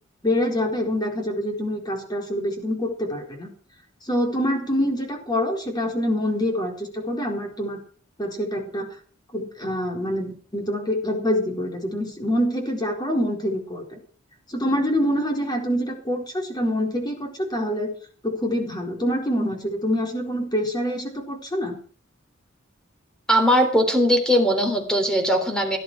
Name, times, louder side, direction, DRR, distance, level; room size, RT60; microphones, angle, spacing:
voice 1, 0.2-3.5 4.1-7.8 8.2-8.9 9.3-14.0 14.5-17.9 18.2-21.8, equal, 20° left, 1 dB, 4.2 m, -25 dB
voice 2, 23.3-25.8, equal, 5° left, 5 dB, 3.5 m, -20 dB
17.5 x 12.0 x 4.8 m, 0.42 s
head